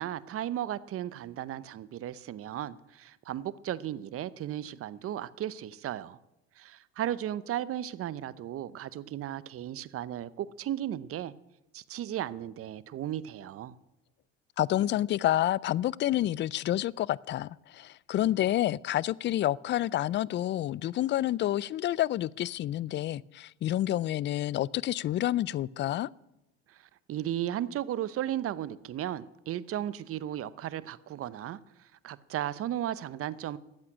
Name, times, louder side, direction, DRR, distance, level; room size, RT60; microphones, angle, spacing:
voice 1, 0.0-6.2 6.6-11.3 11.7-13.8 26.7-31.6 32.0-33.6, right 11 dB, 45° right, 0.8 m, -35 dB
voice 2, 14.6-26.1, left 13 dB, 35° left, 0.4 m, -29 dB
13.0 x 8.5 x 9.8 m
supercardioid pair, 90°, 32 cm